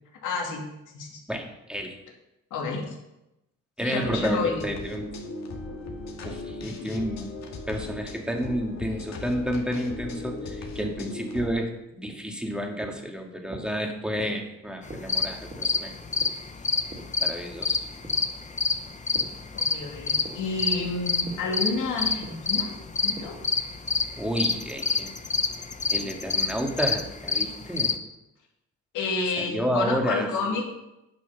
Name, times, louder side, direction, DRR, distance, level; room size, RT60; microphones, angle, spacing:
voice 1, 0.2-0.6 0.9-1.2 2.5-2.9 3.8-4.7 19.5-22.7 23.0-23.4 28.9-30.6, left 3 dB, 85° left, -1 dB, 2.6 m, -29 dB
voice 2, 1.3-1.9 3.8-5.1 6.2-16.2 17.2-17.8 24.2-25.1 25.9-28.0 29.4-30.6, equal, 5° right, 2 dB, 1.9 m, -31 dB
sound 1, 4.0-11.5, left 2 dB, 60° left, 2.0 m, -37 dB
sound 2, 11.9-19.4 19.7-23.6, right 1 dB, 25° right, 2.6 m, -46 dB
sound 3, 14.8-28.0, left 4 dB, 25° left, 0.9 m, -27 dB
10.5 x 6.2 x 5.7 m, 0.91 s
cardioid pair, 90°, 30 cm